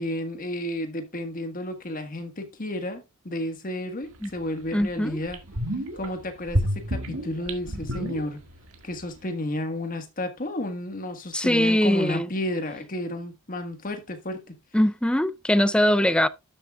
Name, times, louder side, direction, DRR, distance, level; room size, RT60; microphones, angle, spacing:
voice 1, 0.0-5.4 5.9-8.4 8.8-14.6, left 1 dB, 40° left, 1.5 m, -32 dB
sound 1, 4.2-4.3 4.8-4.9 5.3-6.1 6.5-8.8 9.0-9.1, equal, 70° right, 1.8 m, -29 dB
voice 2, 4.7-5.2 11.3-12.3 14.7-16.3, left 1 dB, 5° left, 0.4 m, -21 dB
12.5 x 7.3 x 2.3 m
head